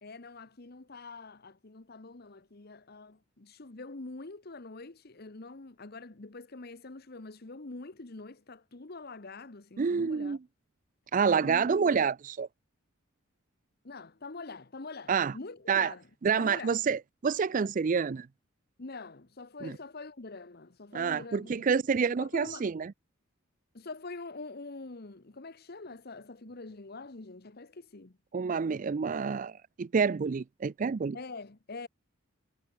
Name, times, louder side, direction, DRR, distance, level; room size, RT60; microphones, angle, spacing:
voice 1, 0.0-10.4 11.4-12.0 13.8-16.7 18.8-21.7 22.0-22.7 23.7-28.2 31.1-31.9, left 3 dB, 50° left, 1.1 m, -45 dB
voice 2, 9.8-10.4 11.1-12.5 15.1-15.3 15.7-15.9 16.2-18.3 19.6-19.7 20.9-22.9 28.3-31.2, right 6 dB, 40° right, 0.4 m, -28 dB
head